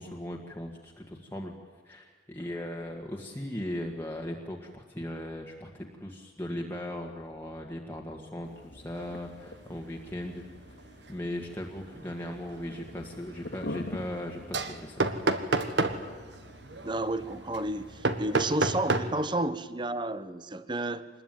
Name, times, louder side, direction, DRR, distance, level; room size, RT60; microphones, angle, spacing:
voice 1, 0.0-1.5 1.8-10.4 11.1-15.0, left 1 dB, 10° left, 1.8 m, -38 dB
sound 1, 8.4-18.8, left 1 dB, 80° left, 2.2 m, -46 dB
sound 2, 8.9-9.2 9.6-9.9 10.3-19.4, right 2 dB, 70° right, 1.6 m, -32 dB
voice 2, 16.8-21.1, right 2 dB, 25° right, 1.0 m, -31 dB
26.0 x 21.0 x 9.3 m
head